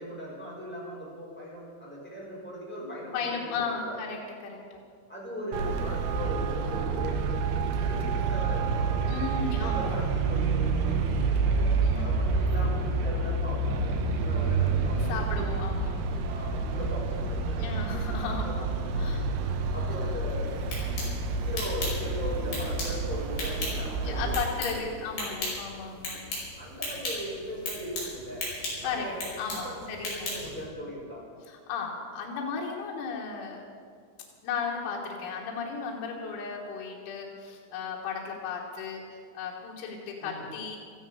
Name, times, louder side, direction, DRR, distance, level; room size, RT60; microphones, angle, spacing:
voice 1, 0.0-4.0 5.1-7.4 7.8-9.1 9.6-15.3 16.3-18.1 18.4-18.6 19.7-20.5 21.4-24.4 24.7-25.5 26.5-28.4 28.8-29.2 29.6-31.2 40.2-40.5, equal, ahead, -6 dB, 4.9 m, -39 dB
voice 2, 2.8-4.8 9.1-9.9 11.8-12.2 15.1-16.1 17.6-19.3 24.0-26.3 28.8-29.0 29.4-29.7 30.0-30.1 31.5-33.6 34.4-40.8, left 5 dB, 85° left, -2 dB, 3.9 m, -35 dB
Traffic noise roadway noise, 5.5-24.5, right 4 dB, 90° right, 3.5 m, -28 dB
sound 1, 20.5-30.6, left 2 dB, 50° left, 6.8 m, -37 dB
16.5 x 14.0 x 5.5 m, 2.2 s
omnidirectional pair, 5.3 m